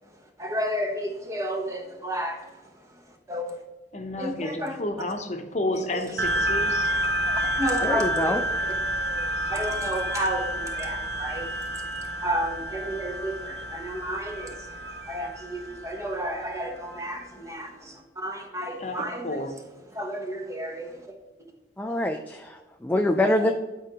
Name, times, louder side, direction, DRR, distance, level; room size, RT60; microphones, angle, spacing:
voice 1, 0.4-2.5 3.3-3.6 4.2-4.8 5.9-6.0 7.6-8.4 9.5-11.8 12.2-19.4 19.9-21.1 22.9-23.5, right 1 dB, 15° right, 1.0 m, -32 dB
voice 2, 3.9-6.9 18.8-19.5, left 1 dB, 40° left, 0.8 m, -31 dB
sound 1, 6.2-17.1, equal, 65° right, 0.6 m, -29 dB
voice 3, 7.8-8.4 21.8-23.5, left 1 dB, 10° left, 0.3 m, -25 dB
11.5 x 4.7 x 3.0 m
head